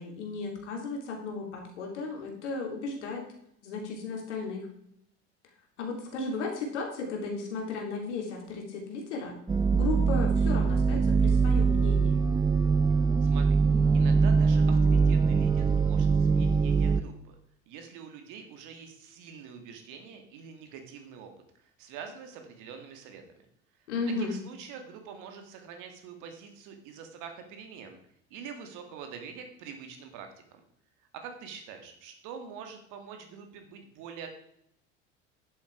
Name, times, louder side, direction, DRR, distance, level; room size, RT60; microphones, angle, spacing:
voice 1, 0.0-3.2 3.6-4.7 5.8-9.3 9.7-12.2 23.9-24.4, left 3 dB, 75° left, 1 dB, 3.1 m, -35 dB
sound 1, 9.5-17.0, right 5 dB, 10° right, 0.4 m, -23 dB
voice 2, 13.2-13.6 13.9-17.4 17.7-21.3 21.6-23.2 24.2-28.0 28.3-30.6 31.1-34.3, right 6 dB, 60° right, 5 dB, 2.4 m, -45 dB
10.5 x 7.7 x 4.6 m, 0.73 s
hypercardioid pair, 70°, 35 cm